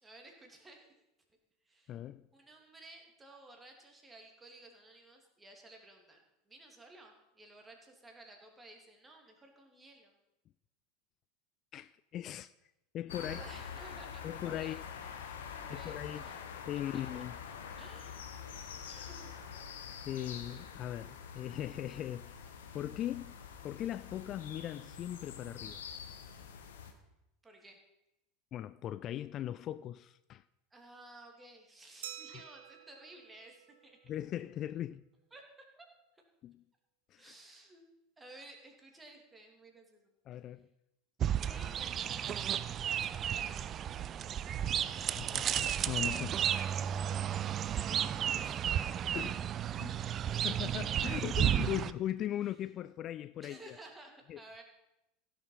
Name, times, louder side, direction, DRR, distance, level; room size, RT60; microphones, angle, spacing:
voice 1, 0.0-0.9 1.6-2.0 2.3-10.1 13.1-14.8 15.5-16.4 17.1-17.2 17.8-18.3 18.8-19.3 27.4-27.8 30.7-34.0 35.3-35.4 35.8-35.9 36.2-36.3 37.2-37.8 38.2-40.1 41.4-43.8 47.6-49.1 53.4-54.6, right 2 dB, 15° right, 2.9 m, -55 dB
voice 2, 1.9-2.3 11.7-12.5 12.9-13.4 14.2-14.9 15.7-16.2 16.7-17.4 20.1-22.4 22.7-23.4 23.6-25.8 28.5-30.4 32.3-32.4 34.1-35.0 36.4-36.6 37.1-37.3 40.3-40.7 45.1-46.4 49.1-50.0 50.4-53.8 54.3-54.4, left 12 dB, 40° left, 0.3 m, -39 dB
sound 1, 13.1-26.9, left 7 dB, 70° left, 1.4 m, -46 dB
Glass, 32.0-34.5, right 11 dB, 65° right, 0.9 m, -50 dB
sound 2, 41.2-51.9, right 9 dB, 35° right, 0.4 m, -33 dB
16.0 x 7.0 x 5.6 m
figure-of-eight pair, 80°, 0 cm